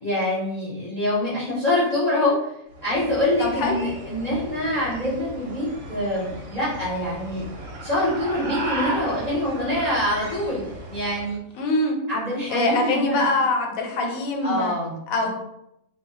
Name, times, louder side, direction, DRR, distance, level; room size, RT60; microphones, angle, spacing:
voice 1, 0.0-2.5 2.8-7.5 7.8-11.4 12.1-13.3 14.4-15.3, left 1 dB, 35° left, -7 dB, 0.8 m, -25 dB
sound 1, 2.7-11.4, right 2 dB, 60° right, 0.7 m, -35 dB
voice 2, 11.6-12.0 12.5-14.7 15.1-15.3, left 2 dB, 90° left, 1 dB, 1.1 m, -23 dB
2.2 x 2.1 x 3.8 m, 0.80 s
omnidirectional pair, 1.4 m